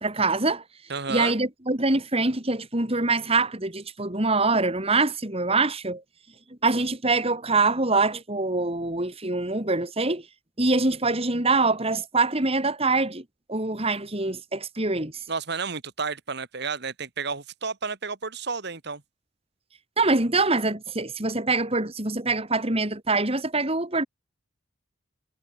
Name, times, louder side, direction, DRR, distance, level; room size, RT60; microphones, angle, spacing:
voice 1, 0.0-0.6 1.1-6.0 6.6-10.2 10.6-15.1 20.0-24.1, right 3 dB, 30° right, 3.2 m, -24 dB
voice 2, 0.9-1.4 15.3-19.0, right 5 dB, 55° right, 2.0 m, -31 dB
head